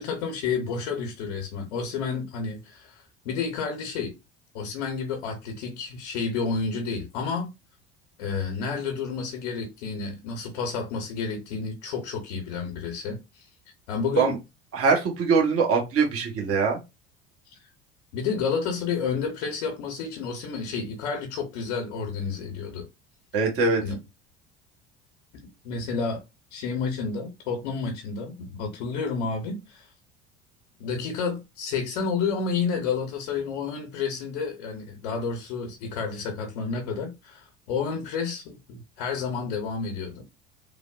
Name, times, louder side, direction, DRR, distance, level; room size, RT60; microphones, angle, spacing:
voice 1, 0.0-4.1 4.5-7.5 8.2-13.5 13.9-14.4 17.5-17.6 18.1-22.9 23.8-24.0 25.6-26.2 26.5-29.9 30.8-40.2, left 5 dB, 75° left, 0.7 m, -30 dB
voice 2, 14.7-16.8 23.3-23.8, right 5 dB, 40° right, 1.1 m, -22 dB
3.3 x 2.0 x 2.3 m
hypercardioid pair, 70°, 34 cm